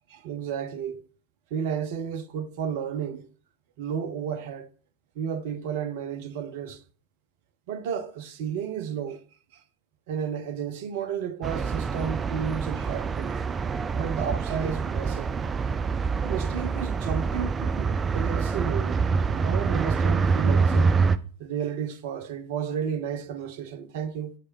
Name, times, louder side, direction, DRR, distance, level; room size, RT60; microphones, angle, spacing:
voice 1, 0.1-1.1 1.5-3.2 3.8-4.7 5.2-6.8 7.7-9.2 9.5-9.6 10.1-13.4 14.0-15.3 16.2-19.0 19.4-21.0 21.4-24.3, right 7 dB, 50° right, 0.7 m, -32 dB
sound 1, 11.4-21.2, right 5 dB, 20° right, 0.4 m, -26 dB
8.8 x 3.4 x 5.2 m
figure-of-eight pair, 90°, 0 cm